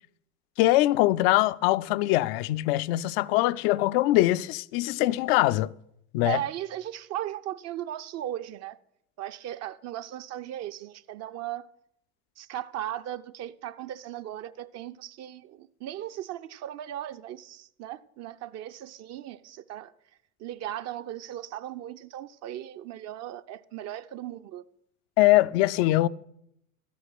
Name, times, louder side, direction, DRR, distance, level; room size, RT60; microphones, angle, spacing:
voice 1, 0.6-5.7 6.1-6.4 25.2-26.1, left 17 dB, 50° left, 0.5 m, -22 dB
voice 2, 6.2-8.8 9.2-11.7 12.4-19.9 20.4-24.6, right 12 dB, 40° right, 0.7 m, -37 dB
13.0 x 8.5 x 6.0 m
figure-of-eight pair, 70°, 41 cm